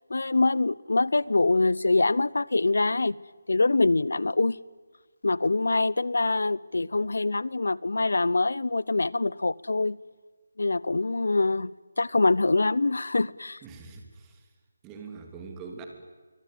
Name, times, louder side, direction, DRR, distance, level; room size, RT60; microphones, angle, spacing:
voice 1, 0.1-3.2 3.5-4.6 5.2-10.0 10.6-11.7 12.0-13.6, left 3 dB, 80° left, 0.8 m, -24 dB
voice 2, 13.6-14.5 14.8-15.9, right 5 dB, 10° right, 2.9 m, -43 dB
25.5 x 23.5 x 9.3 m
figure-of-eight pair, 170°, 0 cm